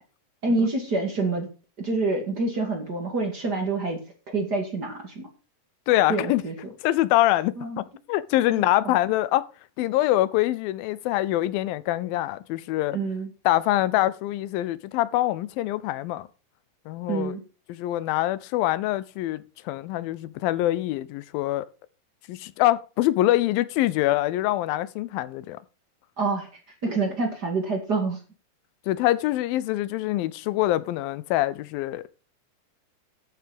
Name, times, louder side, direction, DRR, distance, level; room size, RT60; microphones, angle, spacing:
voice 1, 0.4-1.5 1.8-4.0 4.3-5.3 6.1-6.5 7.6-7.8 8.5-8.6 12.9-13.3 17.1-17.4 26.2-26.5 26.8-28.2, right 3 dB, 30° right, 2.3 m, -27 dB
voice 2, 5.9-6.4 6.8-9.5 9.8-13.0 13.5-16.3 16.9-17.3 17.7-21.7 22.3-25.6 28.9-32.1, left 15 dB, 85° left, 2.5 m, -24 dB
11.5 x 7.6 x 5.2 m
omnidirectional pair, 4.1 m